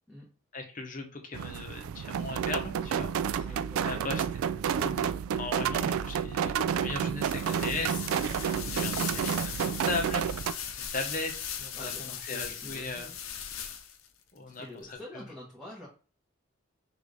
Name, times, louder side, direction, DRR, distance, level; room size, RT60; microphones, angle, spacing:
voice 1, 0.5-3.6 3.8-4.2 4.6-13.1 14.3-15.2, left 3 dB, 40° left, 3 dB, 1.0 m, -38 dB
sound 1, 1.3-10.5, right 8 dB, 90° right, 0.3 m, -30 dB
voice 2, 3.4-4.1 11.7-13.2 14.6-15.9, left 1 dB, 5° right, -6 dB, 1.2 m, -46 dB
sound 2, 7.2-14.1, left 8 dB, 80° left, 0.7 m, -39 dB
6.0 x 2.6 x 3.2 m, 0.37 s
head